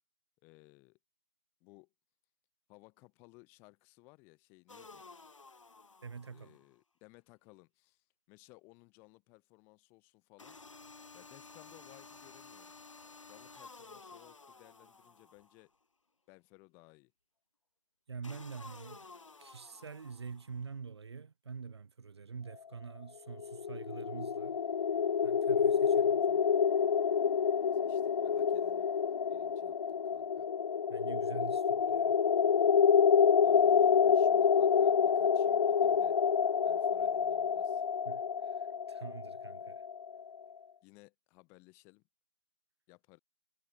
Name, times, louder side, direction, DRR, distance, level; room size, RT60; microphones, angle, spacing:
voice 1, 0.4-1.0 1.6-1.9 2.7-5.0 6.3-10.6 11.1-12.8 13.3-15.7 16.3-17.1 27.7-28.9 29.3-29.8 30.0-30.5 33.4-36.2 36.6-37.8 40.8-42.0 42.9-43.2, left 28 dB, 15° left, 3.4 m, -60 dB
sound 1, 4.7-6.7 10.4-15.7 18.2-20.6, left 4 dB, 85° left, 2.2 m, -54 dB
voice 2, 6.0-6.6 18.1-19.1 19.4-24.6 25.2-26.5 30.9-32.1 38.0-39.8, right 5 dB, 60° right, 2.3 m, -45 dB
sound 2, 23.4-40.2, left 7 dB, 65° left, 0.4 m, -28 dB
hypercardioid pair, 165°, 16 cm